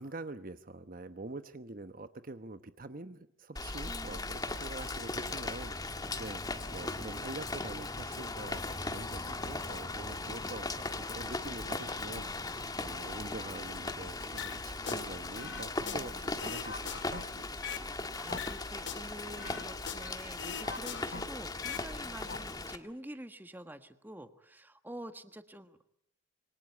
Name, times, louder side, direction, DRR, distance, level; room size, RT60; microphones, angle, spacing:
voice 1, 0.0-17.7, right 2 dB, 45° right, 11 dB, 1.0 m, -45 dB
Rain, 3.6-22.8, left 2 dB, 20° left, 1.7 m, -38 dB
voice 2, 3.8-4.3 5.2-5.4 15.8-16.3 18.2-25.9, right 1 dB, 10° right, 9 dB, 1.5 m, -48 dB
sound 1, 6.3-6.7 7.0-20.3, left 4 dB, 80° left, 3.3 m, -59 dB
sound 2, 14.4-15.0 15.4-17.9 18.3-20.1 20.4-21.9 22.1-22.4, left 6 dB, 65° left, 1.9 m, -41 dB
26.5 x 24.5 x 8.6 m, 0.74 s
head